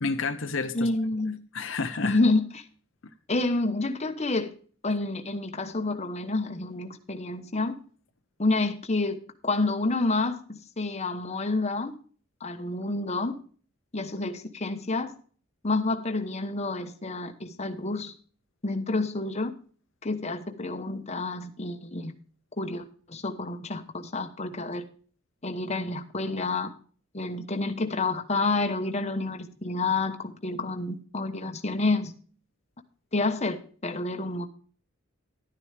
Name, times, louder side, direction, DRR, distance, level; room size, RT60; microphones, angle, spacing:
voice 1, 0.0-0.9 1.5-2.3, left 4 dB, 65° left, 8 dB, 0.8 m, -30 dB
voice 2, 0.7-1.4 2.0-2.6 3.3-4.5 4.8-7.7 8.4-9.2 9.4-11.9 12.4-13.4 13.9-15.1 15.6-18.1 18.6-19.5 20.0-22.1 22.6-24.8 25.4-26.7 27.1-30.2 30.4-32.1 33.1-34.5, left 2 dB, 35° left, 7 dB, 1.1 m, -29 dB
12.0 x 9.8 x 3.4 m, 0.42 s
head